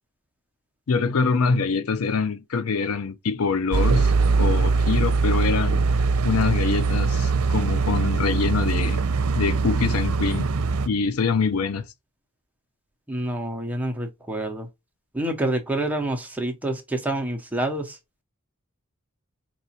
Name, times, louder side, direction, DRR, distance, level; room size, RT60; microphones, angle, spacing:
voice 1, 0.9-4.1 4.4-5.8 6.2-9.1 9.3-10.5 10.9-11.9, left 5 dB, 75° left, 0.5 m, -24 dB
sound 1, 3.7-10.9, right 4 dB, 90° right, 0.5 m, -22 dB
voice 2, 13.1-14.7 15.1-18.0, right 1 dB, 5° right, 0.7 m, -27 dB
4.7 x 2.9 x 2.8 m
head